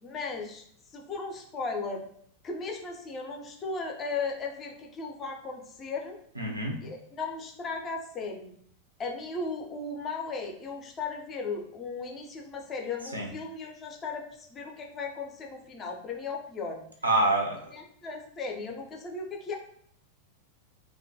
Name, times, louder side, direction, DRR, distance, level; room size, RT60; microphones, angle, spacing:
voice 1, 0.0-0.6 0.9-2.0 2.4-6.2 6.8-8.6 9.0-16.8 17.7-19.6, left 4 dB, 25° left, 1 dB, 0.4 m, -36 dB
voice 2, 6.4-6.8 13.1-13.3 17.0-17.7, right 2 dB, 80° right, 0 dB, 0.5 m, -26 dB
2.2 x 2.1 x 2.6 m, 0.66 s
figure-of-eight pair, 90°, 0 cm